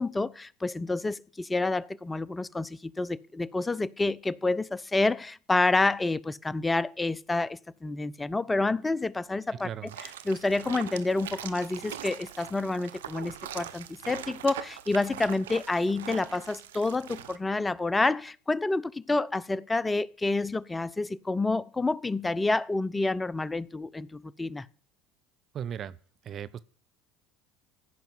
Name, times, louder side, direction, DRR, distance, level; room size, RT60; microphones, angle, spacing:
voice 1, 0.0-9.7 10.3-24.7, left 2 dB, 15° left, 0.7 m, -28 dB
voice 2, 9.5-10.0 25.5-26.0 26.2-26.6, right 9 dB, 45° right, 0.8 m, -37 dB
sound 1, 9.9-17.4, right 11 dB, 90° right, 1.0 m, -42 dB
15.5 x 5.9 x 9.3 m
hypercardioid pair, 85°, 0 cm